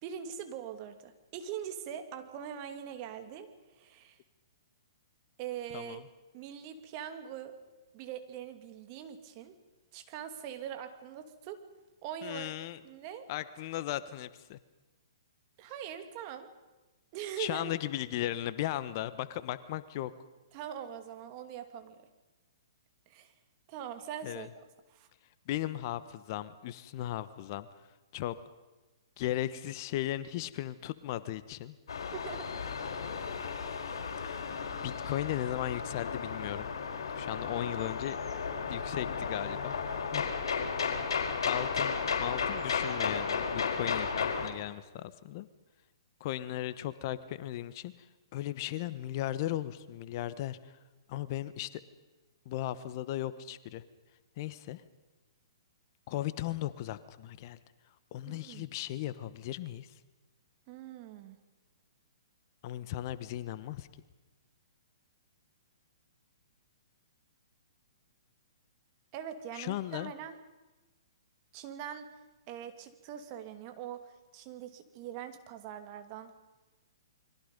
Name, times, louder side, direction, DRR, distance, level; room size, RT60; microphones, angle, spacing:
voice 1, 0.0-4.2 5.4-6.0 6.3-7.6 7.9-9.6 9.9-11.7 12.0-12.5 12.8-13.3 15.6-16.5 17.1-17.7 20.5-22.0 23.1-23.3 23.7-24.6 24.9-25.1 32.1-32.5 58.3-58.7 60.7-61.4 69.1-70.4 71.5-72.1 72.5-76.3, right 9 dB, 40° right, 7 dB, 2.4 m, -42 dB
voice 2, 12.2-12.8 13.3-14.6 17.4-20.1 24.2-24.5 25.5-27.7 28.1-28.4 29.2-31.8 34.2-34.5 34.8-36.7 37.1-38.2 38.7-39.8 40.1-40.3 41.4-45.5 46.2-50.8 51.1-51.8 52.4-53.8 54.4-54.8 56.1-57.6 58.1-60.0 62.6-63.9 69.5-70.1, left 13 dB, 45° left, 14 dB, 1.1 m, -36 dB
sound 1, 31.9-44.5, left 5 dB, 70° left, 4.5 m, -34 dB
29.5 x 23.0 x 5.3 m, 1.1 s
hypercardioid pair, 125°, 3 cm